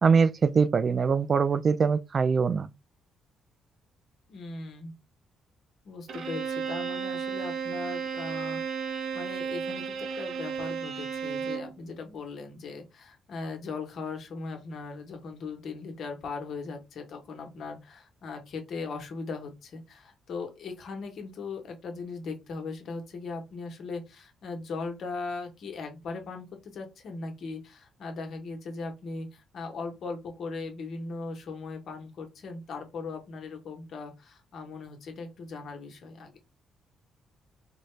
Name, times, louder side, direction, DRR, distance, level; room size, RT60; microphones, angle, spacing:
voice 1, 0.0-2.7, right 5 dB, 40° right, 0.3 m, -23 dB
voice 2, 4.3-4.9 5.8-36.3, left 4 dB, 65° left, 1.0 m, -39 dB
Bowed string instrument, 6.1-11.8, right 6 dB, 70° right, 0.7 m, -33 dB
3.9 x 2.2 x 3.2 m
cardioid pair, 90°, 0 cm